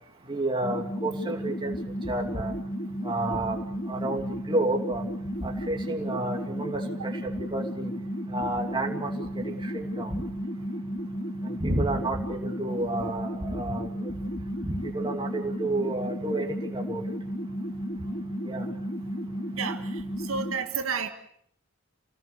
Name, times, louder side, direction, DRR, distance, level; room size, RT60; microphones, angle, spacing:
voice 1, 0.3-1.7 2.0-2.5 3.0-3.6 3.9-5.0 5.4-7.9 8.3-9.1 9.5-10.2 11.6-13.9 14.6-17.0 18.5-18.7, right 2 dB, 20° right, 2 dB, 2.7 m, -30 dB
sound 1, 0.6-20.6, equal, 40° left, 2.1 m, -33 dB
voice 2, 19.5-21.1, right 5 dB, 75° right, 5 dB, 2.0 m, -31 dB
29.5 x 19.0 x 7.0 m, 0.66 s
head